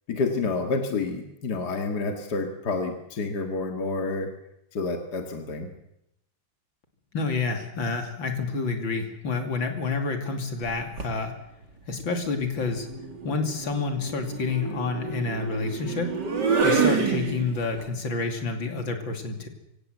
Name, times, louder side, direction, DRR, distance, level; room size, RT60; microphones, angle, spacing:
voice 1, 0.1-4.3 4.7-5.7, left 3 dB, 55° left, 5 dB, 2.5 m, -29 dB
voice 2, 7.1-11.3 11.9-12.9 13.2-16.1 16.6-19.5, left 4 dB, 75° left, 5 dB, 3.4 m, -29 dB
sound 1, 10.6-11.2 12.6-17.8, right 5 dB, 60° right, 2.9 m, -28 dB
24.0 x 17.0 x 8.0 m, 0.83 s
omnidirectional pair, 2.1 m